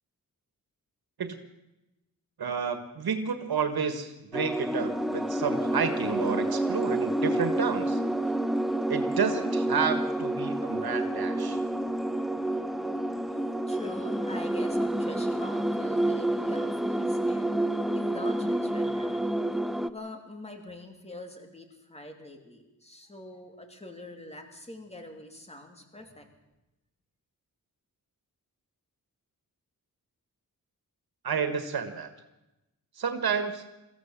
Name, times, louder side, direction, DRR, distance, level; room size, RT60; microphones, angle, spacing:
voice 1, 2.4-8.0 8.9-11.6 31.2-32.1 33.0-33.6, right 6 dB, 90° right, 8 dB, 1.7 m, -30 dB
sound 1, 4.3-19.9, right 1 dB, ahead, 0.6 m, -29 dB
voice 2, 12.3-17.5 17.9-19.2 19.8-26.3, left 1 dB, 15° left, 4 dB, 2.9 m, -44 dB
23.5 x 15.0 x 7.5 m, 0.98 s
wide cardioid pair, 150°, 36 cm